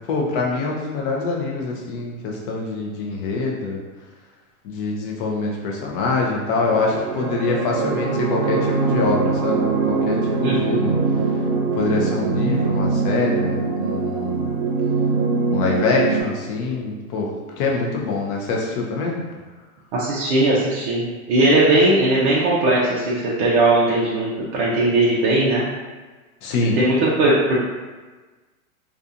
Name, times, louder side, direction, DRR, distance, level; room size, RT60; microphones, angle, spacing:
voice 1, 0.1-3.8 4.6-10.9 11.7-14.5 15.5-17.3 17.6-19.2 26.4-26.8, left 3 dB, 40° left, -2 dB, 0.6 m, -24 dB
sound 1, 6.6-16.2, right 4 dB, 65° right, 0.7 m, -22 dB
voice 2, 10.4-10.9 19.9-25.7 26.7-27.6, right 2 dB, 35° right, -7 dB, 0.4 m, -19 dB
2.6 x 2.4 x 2.4 m, 1.3 s
hypercardioid pair, 140°, 42 cm